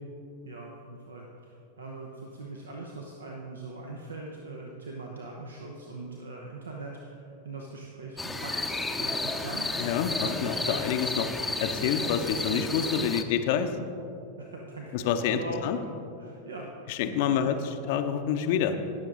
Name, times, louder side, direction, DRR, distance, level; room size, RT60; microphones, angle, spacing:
voice 1, 0.4-9.9 10.2-10.8 14.4-17.0 17.3-17.7, right 2 dB, 70° right, 0 dB, 0.9 m, -41 dB
sound 1, 8.2-13.2, left 2 dB, 5° left, 0.7 m, -32 dB
voice 2, 9.8-11.3 11.6-13.8 14.9-15.8 16.9-17.6 17.9-18.8, left 8 dB, 50° left, 8 dB, 0.7 m, -27 dB
17.5 x 6.8 x 3.8 m, 2.8 s
figure-of-eight pair, 90°, 0 cm